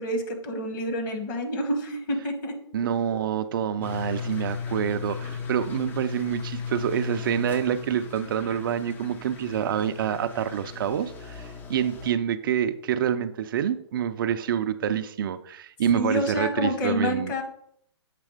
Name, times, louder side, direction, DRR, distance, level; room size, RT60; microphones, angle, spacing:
voice 1, 0.0-2.5 15.9-17.4, left 1 dB, 45° left, 4 dB, 1.5 m, -28 dB
voice 2, 2.7-17.3, right 9 dB, 50° right, 10 dB, 0.4 m, -27 dB
sound 1, 3.8-12.1, left 6 dB, 15° left, 0.5 m, -36 dB
7.4 x 3.4 x 4.9 m, 0.67 s
hypercardioid pair, 140°, 15 cm